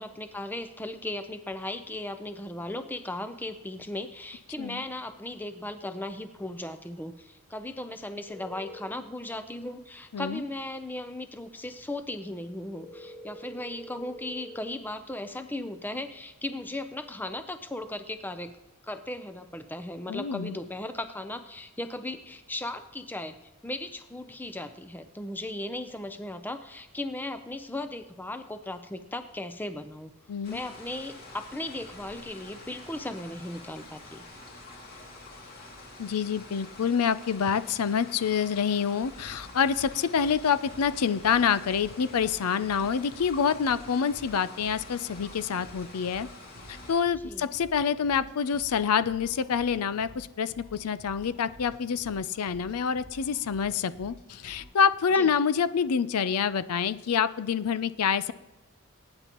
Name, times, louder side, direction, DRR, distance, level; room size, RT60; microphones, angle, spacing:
voice 1, 0.0-18.5 18.8-23.4 23.6-30.1 30.5-34.3 47.2-47.5 55.1-55.3, left 1 dB, 10° left, 9 dB, 0.6 m, -37 dB
sound 1, 8.3-8.8 12.8-14.6, equal, 25° left, 4.2 m, -45 dB
voice 2, 20.1-20.6 30.3-30.6 36.0-46.3 46.9-58.3, left 7 dB, 90° left, 15 dB, 0.5 m, -27 dB
sound 2, 30.4-47.0, left 2 dB, 45° left, 2.5 m, -47 dB
sound 3, 39.0-54.7, equal, 60° left, 5.1 m, -51 dB
22.0 x 9.7 x 3.0 m, 1.0 s
head